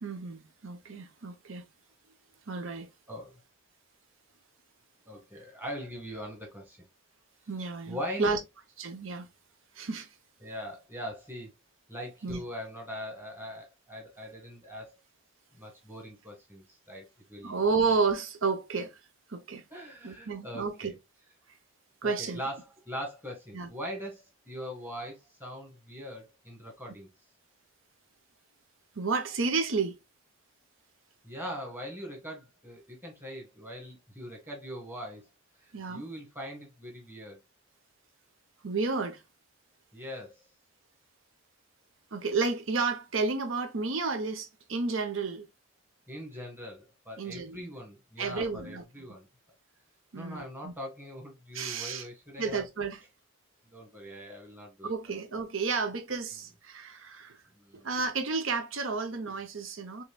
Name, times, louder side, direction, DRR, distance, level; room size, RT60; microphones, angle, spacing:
voice 1, 0.0-1.7 2.5-2.9 7.5-8.4 8.8-9.3 9.7-10.1 12.2-12.4 17.4-18.9 19.3-19.6 20.0-20.9 22.0-22.4 23.5-23.7 28.9-30.0 35.7-36.0 38.6-39.2 42.1-45.5 47.2-47.6 48.2-48.8 50.1-50.7 51.5-52.0 52.4-53.0 54.8-57.4 57.8-60.0, right 4 dB, 65° right, 0.9 m, -31 dB
voice 2, 3.1-3.4 5.0-6.8 7.9-8.3 10.4-11.5 11.9-15.0 15.5-17.6 19.7-20.9 22.0-27.1 31.2-35.2 35.6-37.4 39.9-40.4 46.1-49.3 50.1-52.6 53.6-55.1 57.5-57.9, equal, 10° right, 1.6 m, -41 dB
5.7 x 3.2 x 2.3 m
head